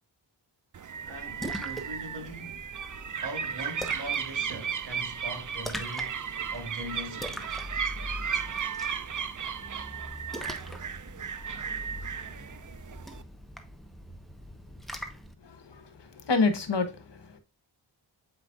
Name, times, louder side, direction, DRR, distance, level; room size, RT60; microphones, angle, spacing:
sound 1, 0.7-13.2, right 7 dB, 45° right, 0.6 m, -35 dB
voice 1, 1.0-2.7 3.2-6.2 6.5-7.5, right 1 dB, 70° right, 2.1 m, -41 dB
Splash splatter, 1.1-15.3, equal, ahead, 1.1 m, -42 dB
voice 2, 15.4-17.3, left 3 dB, 70° left, 1.3 m, -28 dB
7.9 x 5.0 x 2.5 m
cardioid pair, 50°, 45 cm